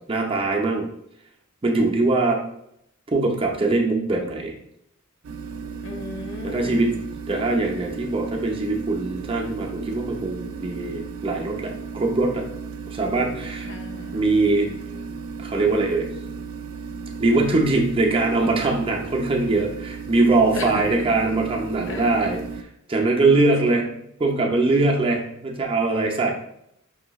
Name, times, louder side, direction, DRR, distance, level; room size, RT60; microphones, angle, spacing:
voice 1, 0.1-0.9 1.6-2.4 3.1-4.6 6.4-6.9 7.3-12.4 12.9-13.7 14.1-14.7 15.4-16.1 17.2-22.4 22.9-23.8 24.2-26.3, right 2 dB, 25° right, 0 dB, 0.6 m, -22 dB
sound 1, 5.2-22.6, right 5 dB, 90° right, 0.4 m, -35 dB
voice 2, 5.8-6.9 13.7-14.3 20.5-21.1 21.9-22.1 23.6-23.9, left 3 dB, 65° left, 4 dB, 0.6 m, -35 dB
5.5 x 3.0 x 2.3 m, 0.76 s
head